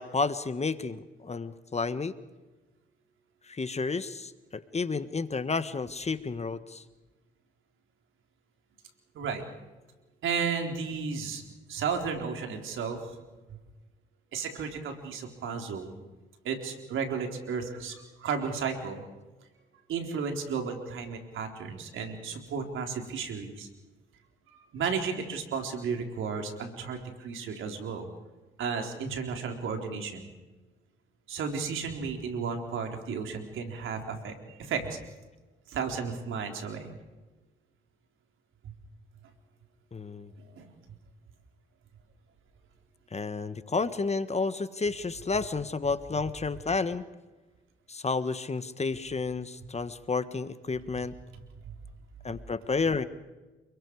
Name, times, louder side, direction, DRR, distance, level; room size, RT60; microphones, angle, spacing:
voice 1, 0.0-2.1 3.4-6.8 39.9-40.3 43.1-47.0 47.9-51.1 52.2-53.1, left 4 dB, 30° left, 12 dB, 1.5 m, -31 dB
voice 2, 10.2-11.4 11.7-13.2 14.3-16.0 16.4-19.0 19.9-23.7 24.7-28.1 28.6-30.3 31.3-35.0 35.7-36.9 40.4-40.7, right 5 dB, 75° right, 4 dB, 4.2 m, -33 dB
30.0 x 22.0 x 4.9 m, 1.2 s
supercardioid pair, 55°, 21 cm